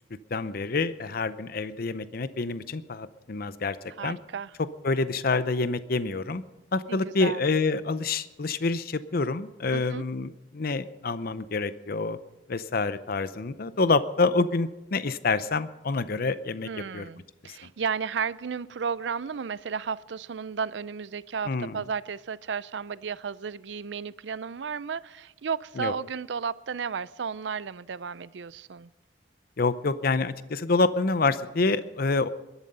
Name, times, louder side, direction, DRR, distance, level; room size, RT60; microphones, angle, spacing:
voice 1, 0.3-3.8 4.0-4.2 4.6-6.4 6.7-12.2 12.5-17.1 17.4-17.5 21.5-21.8 25.8-25.9 29.6-32.3, left 3 dB, 55° left, 14 dB, 0.6 m, -27 dB
voice 2, 4.0-4.5 6.9-7.4 9.7-10.0 16.6-28.9, right 6 dB, 70° right, 19 dB, 0.5 m, -33 dB
22.0 x 11.5 x 5.5 m, 1.0 s
head